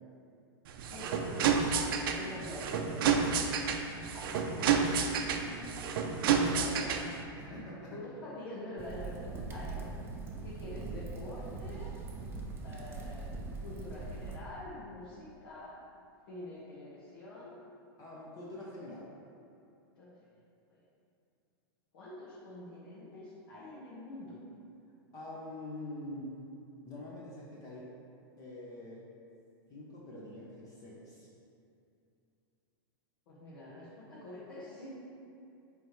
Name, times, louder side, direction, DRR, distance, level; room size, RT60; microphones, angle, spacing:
sound 1, 0.7-7.2, right 6 dB, 65° right, 0.6 m, -30 dB
voice 1, 0.9-2.4 4.1-5.0 6.8-7.0 7.9-9.9 10.4-12.0 12.6-13.3 13.6-15.8 16.3-17.6 20.0-20.1 20.7-20.8 21.9-24.4 33.3-34.9, left 1 dB, 65° left, -8 dB, 1.5 m, -46 dB
voice 2, 2.2-3.6 5.3-5.7 6.1-6.9 7.4-8.0 18.0-19.1 25.1-26.4 26.8-27.9 28.4-29.0 29.7-31.3, left 1 dB, 30° left, -6 dB, 1.0 m, -45 dB
sound 2, 8.8-14.4, right 3 dB, 20° right, 0.6 m, -41 dB
8.8 x 3.5 x 3.2 m, 2.6 s
hypercardioid pair, 135°, 13 cm